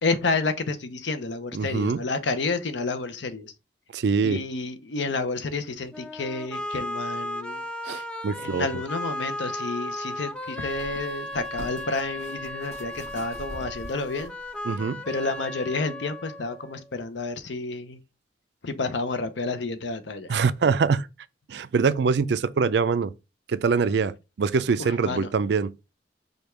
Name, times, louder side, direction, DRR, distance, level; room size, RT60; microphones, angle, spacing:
voice 1, 0.0-3.5 4.2-7.6 7.9-8.0 8.4-14.3 15.1-18.0 18.6-20.4 24.8-25.3, left 3 dB, 75° left, 0.7 m, -30 dB
voice 2, 1.5-2.0 3.9-4.4 7.8-8.7 14.7-15.0 20.3-21.1 21.5-23.1 23.5-25.7, right 5 dB, 65° right, 0.4 m, -24 dB
sound 1, 5.9-16.9, left 1 dB, 5° left, 0.4 m, -35 dB
sound 2, 10.6-14.6 15.2-15.3, equal, 35° left, 2.3 m, -44 dB
5.1 x 2.3 x 4.4 m
head